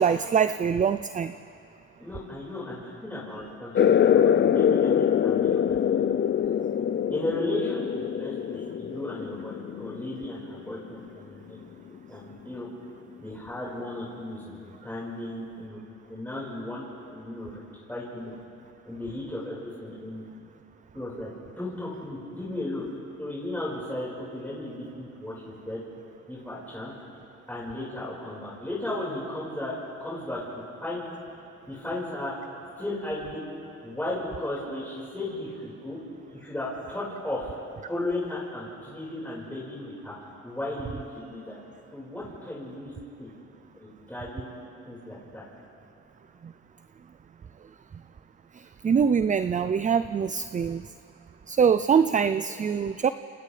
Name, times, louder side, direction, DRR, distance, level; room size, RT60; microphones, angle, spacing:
voice 1, 0.0-1.3 48.8-50.8 51.5-53.1, right 7 dB, 25° right, 12 dB, 0.4 m, -23 dB
voice 2, 2.0-6.1 7.1-11.6 12.1-12.7 13.2-14.6 14.8-15.8 16.1-16.8 17.1-17.6 17.9-18.3 18.8-20.2 20.9-21.3 21.6-22.8 23.2-25.8 26.3-26.9 27.5-30.4 30.8-31.0 31.7-32.3 32.7-33.4 33.8-36.0 36.3-37.6 37.9-40.2 40.4-41.6 41.9-42.9 43.2-43.3 43.8-44.5 44.8-45.4, left 1 dB, 5° left, -8 dB, 5.0 m, -35 dB
sound 1, 3.7-10.9, left 9 dB, 40° left, 0.5 m, -24 dB
28.5 x 28.5 x 3.4 m, 2.8 s
cardioid pair, 90°, 30 cm